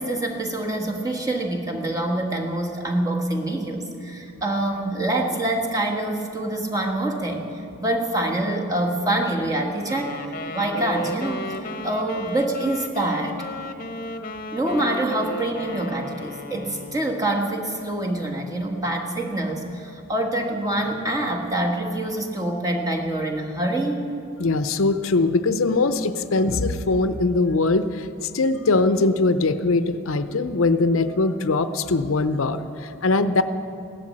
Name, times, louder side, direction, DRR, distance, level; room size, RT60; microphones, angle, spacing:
voice 1, 0.0-7.4 7.8-10.2 10.5-13.4 14.5-24.0, right 1 dB, 15° right, 1 dB, 1.6 m, -25 dB
Wind instrument woodwind instrument, 9.9-17.3, left 2 dB, 40° left, 0.9 m, -34 dB
voice 2, 24.4-33.4, left 3 dB, 75° left, 11 dB, 0.6 m, -21 dB
16.5 x 11.5 x 7.5 m, 2.7 s
head